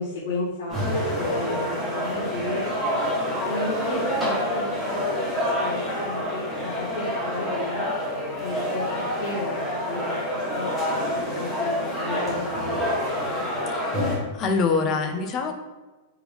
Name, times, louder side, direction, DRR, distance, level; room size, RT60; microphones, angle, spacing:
voice 1, 0.0-2.7 3.5-7.9 8.4-12.8, left 2 dB, 80° left, -7 dB, 1.0 m, -33 dB
sound 1, 0.7-14.2, left 1 dB, 5° right, 1.4 m, -27 dB
voice 2, 13.7-15.5, left 4 dB, 30° left, 5 dB, 0.4 m, -26 dB
3.5 x 3.3 x 3.4 m, 1.2 s
supercardioid pair, 160°, 0 cm